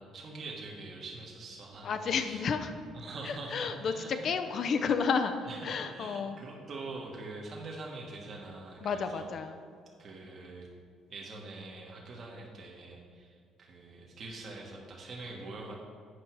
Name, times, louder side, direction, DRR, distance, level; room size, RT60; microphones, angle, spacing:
voice 1, 0.0-2.4 2.9-4.3 5.5-9.3 10.0-10.7 11.1-15.8, right 3 dB, 50° right, -2 dB, 1.3 m, -44 dB
voice 2, 1.8-2.7 3.2-5.4 5.6-6.4 8.8-9.6, left 6 dB, 55° left, 8 dB, 0.5 m, -31 dB
8.1 x 5.4 x 4.6 m, 2.1 s
cardioid pair, 90°, 0 cm